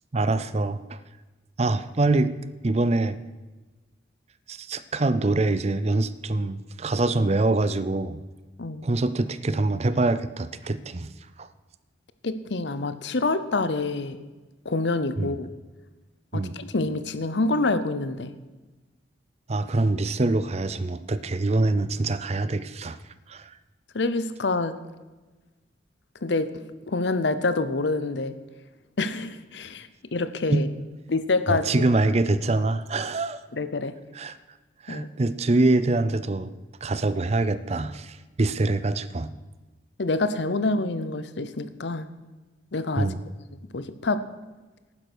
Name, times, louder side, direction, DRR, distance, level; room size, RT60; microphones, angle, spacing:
voice 1, 0.1-1.0 1.6-2.3 2.6-3.2 4.5-8.2 8.8-11.1 11.4-11.5 15.2-15.3 16.3-16.5 19.5-23.0 23.3-23.5 30.5-30.6 31.5-33.4 34.1-34.4 34.8-36.5 36.8-39.3 43.0-43.2, right 2 dB, 35° right, 14 dB, 0.5 m, -24 dB
voice 2, 12.2-14.2 14.6-15.5 16.3-18.3 23.9-24.7 26.2-28.3 29.0-30.7 31.1-31.9 33.5-33.9 34.9-35.1 40.0-42.1 42.7-43.1 43.7-44.2, left 3 dB, 70° left, 12 dB, 0.8 m, -27 dB
11.5 x 9.8 x 6.2 m, 1.2 s
head